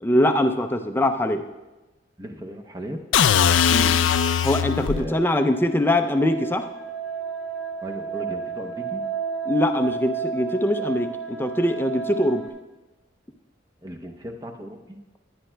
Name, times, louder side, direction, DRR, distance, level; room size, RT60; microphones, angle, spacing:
voice 1, 0.0-1.4 3.7-3.9 4.4-6.7 9.5-12.5, left 1 dB, 10° left, 6 dB, 0.4 m, -22 dB
voice 2, 2.2-3.0 4.9-5.2 7.8-9.0 13.8-15.0, equal, 20° right, 4 dB, 0.7 m, -36 dB
sound 1, 3.1-5.1, left 8 dB, 80° left, 0.4 m, -20 dB
sound 2, 4.2-12.5, right 6 dB, 5° right, 2.4 m, -33 dB
17.5 x 10.0 x 2.2 m, 1.1 s
head